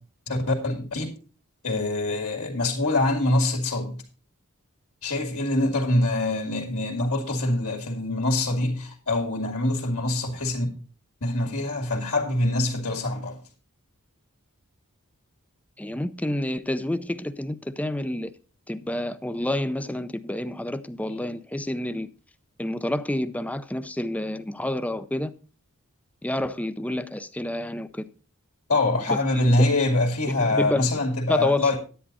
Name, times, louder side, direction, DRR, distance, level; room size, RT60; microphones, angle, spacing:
voice 1, 0.3-1.1 1.6-4.0 5.0-10.7 11.2-13.4 28.7-31.8, left 2 dB, 75° left, 2.2 m, -24 dB
voice 2, 15.8-18.3 18.7-22.1 22.6-25.3 26.2-28.1 29.1-29.7 30.3-31.0 31.3-31.7, left 1 dB, 5° left, 0.5 m, -29 dB
10.0 x 9.6 x 4.1 m
head